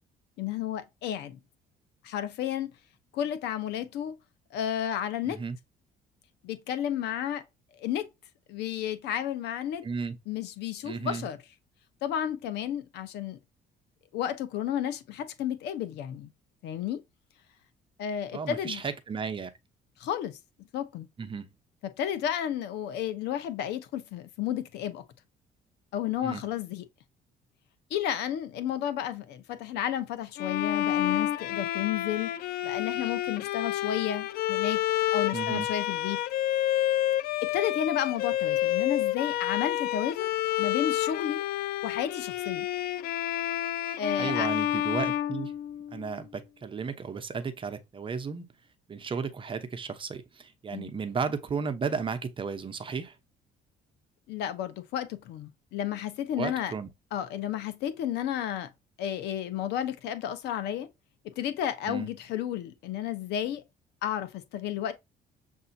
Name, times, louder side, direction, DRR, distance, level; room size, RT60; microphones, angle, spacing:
voice 1, 0.4-1.4 2.0-2.7 3.1-4.1 4.5-5.4 6.4-7.4 7.7-8.1 8.5-9.9 10.3-11.4 12.0-13.4 14.1-16.3 16.6-17.0 18.0-18.8 20.0-20.4 20.7-21.1 21.8-25.0 25.9-26.9 27.9-32.3 32.6-34.8 35.1-36.2 37.4-40.3 40.6-41.4 41.8-42.7 44.0-44.5 50.7-50.9 54.3-56.7 57.1-58.7 59.0-60.9 61.2-63.6 64.0-64.9, left 10 dB, 80° left, 0.9 m, -32 dB
voice 2, 9.8-10.2 10.8-11.3 18.3-19.5 21.2-21.5 26.2-26.4 35.3-35.7 44.2-45.5 45.9-48.5 48.9-53.2 56.4-56.9 61.9-62.1, right 5 dB, 30° right, 0.8 m, -34 dB
Bowed string instrument, 30.4-46.1, left 13 dB, 65° left, 0.4 m, -29 dB
6.8 x 2.7 x 2.7 m
cardioid pair, 110°, 17 cm